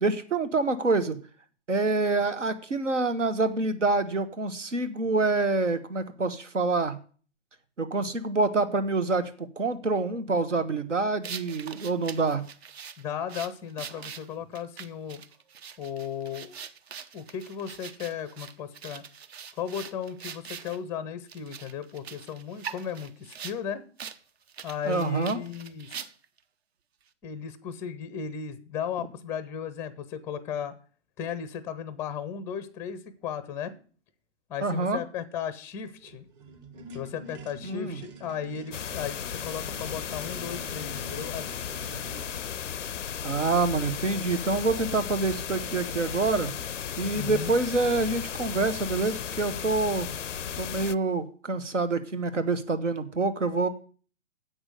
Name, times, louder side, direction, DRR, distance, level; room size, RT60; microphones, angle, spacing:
voice 1, 0.0-1.2 1.7-7.0 7.8-12.4 24.9-25.4 34.6-35.0 37.6-38.0 43.2-46.5 47.0-50.1 50.6-53.7, right 3 dB, 85° right, 11 dB, 1.4 m, -26 dB
sound 1, 11.2-20.8 21.3-23.6 24.0-24.2 24.5-26.4, right 7 dB, 60° right, 0.9 m, -43 dB
voice 2, 13.0-15.2 15.8-16.6 17.1-19.0 19.6-23.8 24.6-26.0 27.2-30.7 31.2-33.8 34.5-36.3 36.9-41.5 47.2-47.5, left 8 dB, 5° left, 15 dB, 0.5 m, -35 dB
sound 2, 35.9-42.4 45.5-45.6 45.9-46.5, right 2 dB, 35° right, 1.2 m, -47 dB
sound 3, 38.7-50.9, left 8 dB, 90° left, 0.5 m, -35 dB
8.0 x 6.1 x 7.9 m, 0.41 s
figure-of-eight pair, 125°, 36 cm